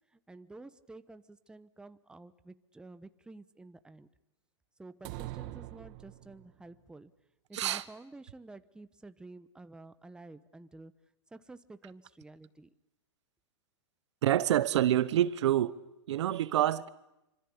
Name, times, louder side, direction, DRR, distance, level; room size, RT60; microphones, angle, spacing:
voice 1, 0.1-4.1 4.8-7.1 7.5-10.9 11.3-12.7, right 2 dB, 5° right, 1.1 m, -51 dB
sound 1, 5.0-6.6, right 17 dB, 45° right, 1.8 m, -43 dB
voice 2, 7.5-7.8 14.2-15.7 16.1-16.9, right 12 dB, 70° right, 1.2 m, -27 dB
26.5 x 26.0 x 8.7 m
hypercardioid pair, 130°, 16 cm